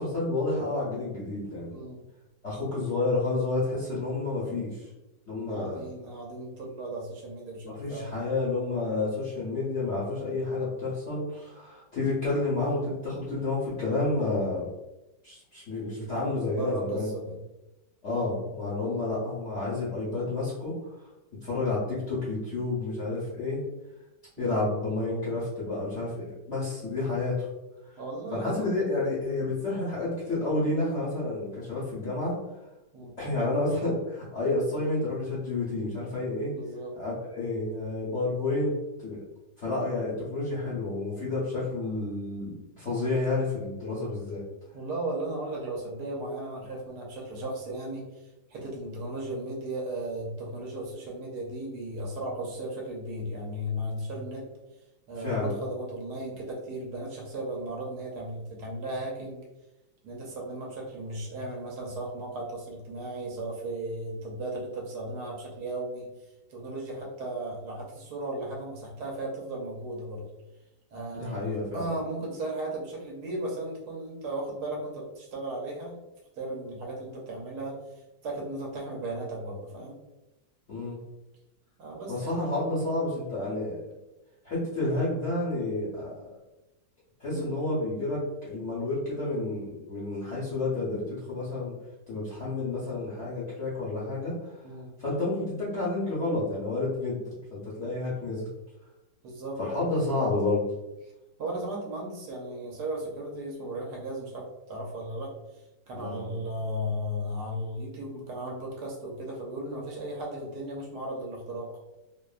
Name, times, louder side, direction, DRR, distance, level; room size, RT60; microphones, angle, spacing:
voice 1, 0.0-1.8 2.4-4.9 5.3-5.9 7.6-14.7 15.2-17.1 18.0-21.1 21.4-23.6 24.4-27.5 27.8-28.0 28.3-32.4 33.2-36.5 36.9-38.7 39.0-39.2 39.6-44.4 55.2-55.6 71.1-71.9 80.7-81.0 82.1-83.8 84.4-86.3 87.2-91.7 92.1-94.6 95.0-98.5 99.6-100.6 105.9-106.4, left 2 dB, 60° left, -8 dB, 0.8 m, -30 dB
voice 2, 1.7-2.0 5.5-8.1 16.5-17.4 24.4-24.6 28.0-28.8 32.9-33.1 36.5-36.9 44.7-54.5 55.1-59.4 60.0-70.2 70.9-76.0 76.4-80.0 81.8-82.5 87.3-87.5 94.6-94.9 99.2-99.6 99.8-100.1 101.0-101.1 101.4-111.7, right 1 dB, 70° right, -2 dB, 1.1 m, -36 dB
2.9 x 2.1 x 2.3 m, 0.99 s
omnidirectional pair, 1.9 m